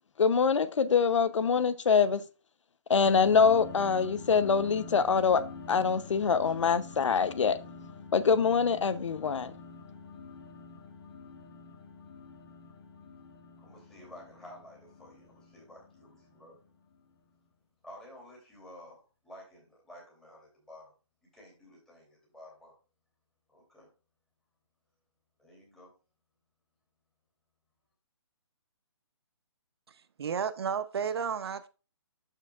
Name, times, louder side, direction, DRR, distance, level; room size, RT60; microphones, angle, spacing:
voice 1, 0.2-2.2 2.9-7.6 8.1-9.5, left 6 dB, 85° left, 0.7 m, -25 dB
sound 1, 3.0-17.0, left 4 dB, 55° left, 1.8 m, -46 dB
voice 2, 13.6-16.6 17.8-20.9 21.3-22.7 23.5-23.9 25.4-25.9, left 1 dB, 5° left, 2.8 m, -52 dB
voice 3, 30.2-31.7, right 7 dB, 60° right, 0.6 m, -32 dB
12.5 x 4.6 x 2.4 m
hypercardioid pair, 165°, 15 cm